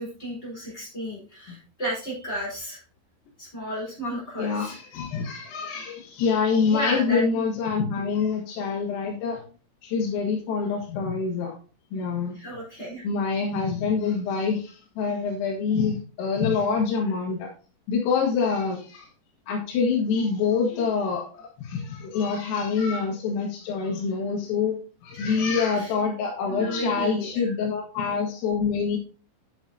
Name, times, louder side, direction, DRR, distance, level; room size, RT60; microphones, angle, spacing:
voice 1, 0.0-2.8 3.4-4.8 6.7-7.4 12.3-13.0 25.2-25.9 26.5-27.4, equal, 15° left, -6 dB, 4.1 m, -33 dB
voice 2, 4.4-9.4 9.8-11.6 11.9-12.4 13.0-17.5 17.9-19.1 19.5-29.0, left 5 dB, 85° left, -2 dB, 4.2 m, -26 dB
9.8 x 7.5 x 2.8 m, 0.37 s
omnidirectional pair, 5.8 m